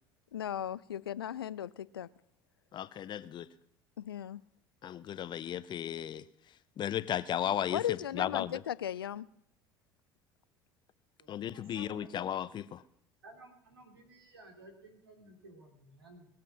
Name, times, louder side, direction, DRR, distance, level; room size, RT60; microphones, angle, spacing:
voice 1, 0.3-2.1 4.0-4.4 7.7-9.3, left 10 dB, 80° left, 0.4 m, -37 dB
voice 2, 2.7-3.5 4.8-6.2 6.8-8.6 11.3-12.8, left 10 dB, 40° left, 0.7 m, -35 dB
voice 3, 11.2-12.1 13.2-16.3, right 2 dB, 80° right, 3.0 m, -55 dB
20.5 x 7.7 x 6.3 m
figure-of-eight pair, 65°, 12 cm